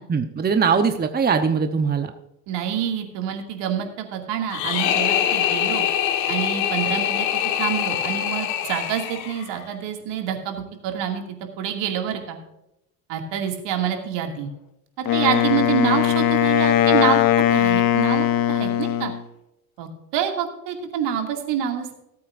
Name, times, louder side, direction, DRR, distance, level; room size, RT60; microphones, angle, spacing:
voice 1, 0.1-2.1, right 5 dB, 20° right, 7 dB, 0.9 m, -21 dB
voice 2, 2.5-5.9 6.3-7.3 7.6-11.2 11.6-12.4 13.1-14.5 15.1-17.2 17.5-19.1 19.8-22.0, right 9 dB, 60° right, 3 dB, 2.4 m, -27 dB
sound 1, 4.5-9.6, left 10 dB, 70° left, 1.6 m, -24 dB
Wind instrument woodwind instrument, 15.1-19.2, left 11 dB, 45° left, 0.9 m, -19 dB
18.0 x 8.5 x 2.6 m, 0.86 s
supercardioid pair, 85°, 47 cm